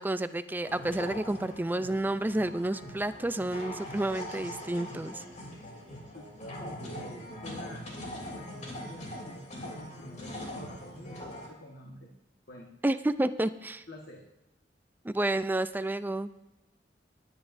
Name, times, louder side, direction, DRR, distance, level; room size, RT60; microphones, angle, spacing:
voice 1, 0.0-5.2 12.8-13.8 15.0-16.3, right 1 dB, 10° right, 12 dB, 0.4 m, -30 dB
sound 1, 0.7-11.5, equal, 40° left, 3.1 m, -42 dB
voice 2, 6.1-12.1 12.5-12.7 13.9-14.2, left 1 dB, 60° left, 0 dB, 1.5 m, -48 dB
19.5 x 10.0 x 2.6 m, 0.94 s
head